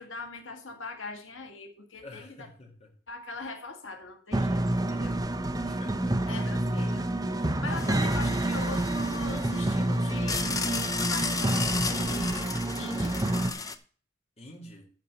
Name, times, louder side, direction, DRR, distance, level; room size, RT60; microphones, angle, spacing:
voice 1, 0.0-2.5 3.1-5.4 6.3-7.1 7.3-13.2, left 3 dB, 90° left, 1.9 m, -41 dB
voice 2, 2.0-2.9 5.5-6.6 14.4-14.9, left 1 dB, 35° left, 2.2 m, -49 dB
sound 1, 4.3-13.5, right 1 dB, 20° right, 0.8 m, -28 dB
sound 2, 7.7-13.7, left 4 dB, 20° left, 0.7 m, -34 dB
12.5 x 4.3 x 6.9 m
head